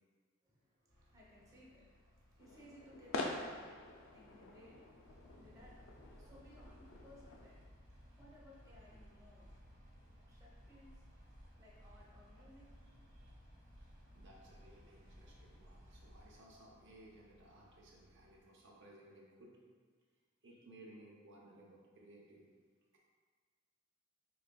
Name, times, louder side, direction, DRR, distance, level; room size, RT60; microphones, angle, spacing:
voice 1, 0.4-9.7 9.9-11.1 11.4-12.7, left 1 dB, 15° right, -5 dB, 0.7 m, -62 dB
sound 1, 0.9-18.4, left 1 dB, 75° right, 1.0 m, -68 dB
sound 2, 2.4-7.5, left 2 dB, 70° left, 0.4 m, -46 dB
sound 3, 5.0-16.4, equal, 35° right, 1.0 m, -59 dB
voice 2, 12.7-13.4 13.7-19.6 20.4-22.5 22.9-23.0, right 1 dB, 60° right, -3 dB, 0.6 m, -60 dB
3.9 x 3.2 x 2.2 m, 1.5 s
head